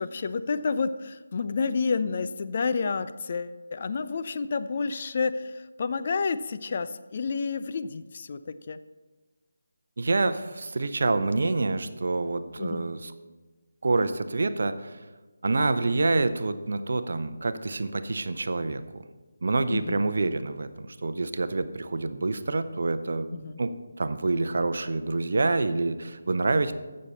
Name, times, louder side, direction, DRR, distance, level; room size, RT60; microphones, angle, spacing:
voice 1, 0.0-8.8 12.6-12.9 19.7-20.0 23.3-23.6, left 4 dB, 40° left, 11 dB, 0.4 m, -30 dB
voice 2, 10.0-13.1 13.8-15.0 15.4-18.8 19.4-23.3 23.6-26.7, right 3 dB, 55° right, 11 dB, 0.7 m, -27 dB
15.0 x 6.5 x 4.2 m, 1.3 s
figure-of-eight pair, 155°, 0 cm